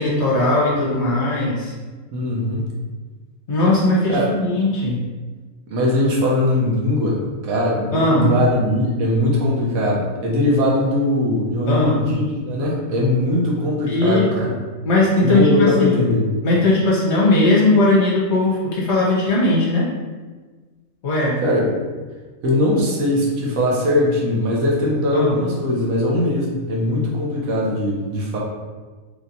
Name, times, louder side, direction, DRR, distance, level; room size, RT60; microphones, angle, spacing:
voice 1, 0.0-1.7 3.5-5.0 7.9-8.3 11.7-12.0 13.9-14.5 14.8-16.0 16.4-19.9 21.0-21.4 25.1-25.4, left 2 dB, 60° left, -4 dB, 0.9 m, -18 dB
voice 2, 2.1-2.7 4.1-4.3 5.7-14.5 15.2-16.3 21.4-21.6 22.4-28.4, left 1 dB, 80° right, -3 dB, 1.2 m, -20 dB
3.2 x 2.9 x 2.6 m, 1.4 s
omnidirectional pair, 1.5 m